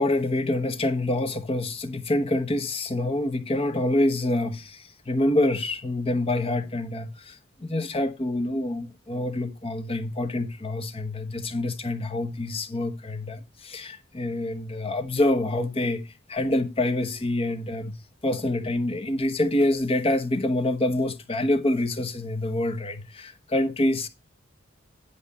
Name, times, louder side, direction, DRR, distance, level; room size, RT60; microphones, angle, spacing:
voice 1, 0.0-24.1, left 1 dB, 30° left, 0.9 m, -26 dB
10.5 x 5.5 x 4.2 m
head